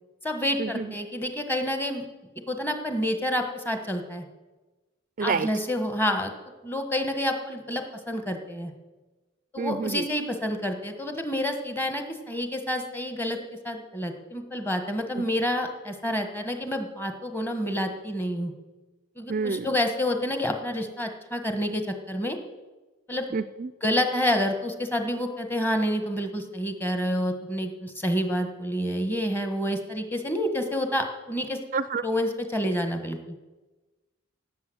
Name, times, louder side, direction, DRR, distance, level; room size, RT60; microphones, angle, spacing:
voice 1, 0.2-2.0 2.5-4.2 5.2-6.3 6.6-8.7 9.5-13.4 13.6-18.5 19.2-22.4 23.1-23.3 23.8-31.6 32.0-33.3, equal, 10° left, 6 dB, 1.4 m, -28 dB
voice 2, 5.2-5.5 9.6-10.1 15.2-15.3 19.3-19.7 23.3-23.7 31.7-32.0, right 5 dB, 45° right, 15 dB, 0.4 m, -28 dB
17.5 x 8.1 x 7.9 m, 1.2 s
head